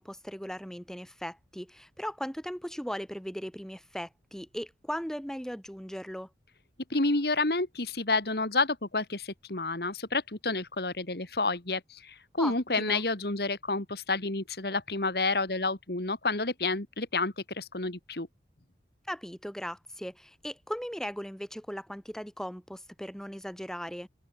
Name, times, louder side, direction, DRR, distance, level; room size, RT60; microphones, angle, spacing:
voice 1, 0.0-6.3 12.4-13.0 19.1-24.1, equal, 5° left, 5.3 m, -38 dB
voice 2, 6.9-18.3, left 3 dB, 60° left, 2.2 m, -29 dB
head